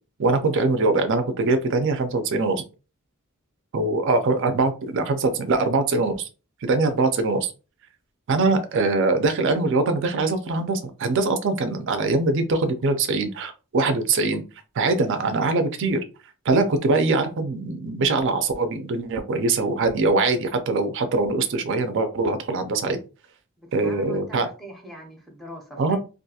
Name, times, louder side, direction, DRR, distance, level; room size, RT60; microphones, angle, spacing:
voice 1, 0.2-2.6 3.7-6.3 6.6-7.5 8.3-14.4 14.8-16.0 16.4-23.0 23.7-24.5 25.8-26.0, right 3 dB, 60° right, 8 dB, 0.4 m, -22 dB
voice 2, 23.6-26.0, equal, ahead, 1 dB, 0.6 m, -41 dB
2.5 x 2.3 x 2.7 m, 0.32 s
head